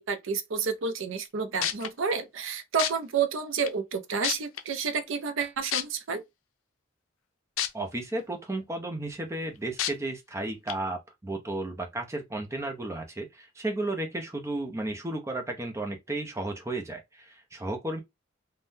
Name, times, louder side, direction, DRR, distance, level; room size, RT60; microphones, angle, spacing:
voice 1, 0.0-6.2, right 5 dB, 70° right, 0.5 m, -30 dB
sound 1, 1.2-1.3 1.6-1.9 2.8-2.9 3.7-3.8 4.2-4.6 5.7-5.8 7.6-7.7 8.2-8.3 9.8-9.9 10.7-10.8, left 10 dB, 85° left, 0.5 m, -27 dB
voice 2, 7.7-18.0, right 2 dB, 15° right, 0.5 m, -33 dB
3.5 x 2.1 x 2.6 m
head